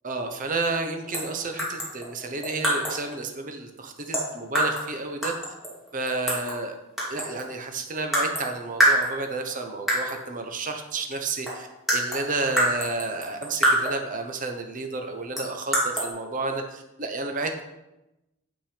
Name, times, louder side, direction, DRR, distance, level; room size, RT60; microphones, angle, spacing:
voice 1, 0.0-5.3 5.9-6.7 7.1-11.7 11.9-17.6, right 3 dB, 40° right, 5 dB, 0.9 m, -31 dB
sound 1, 1.1-1.3 1.6-3.1 4.1-4.9 5.2-6.6 7.0-7.5 8.1-8.5 8.8-9.5 9.9-10.2 11.1-11.2 11.5-14.1 15.4-16.1, right 1 dB, ahead, 2.5 m, -25 dB
7.5 x 5.8 x 5.1 m, 0.93 s
head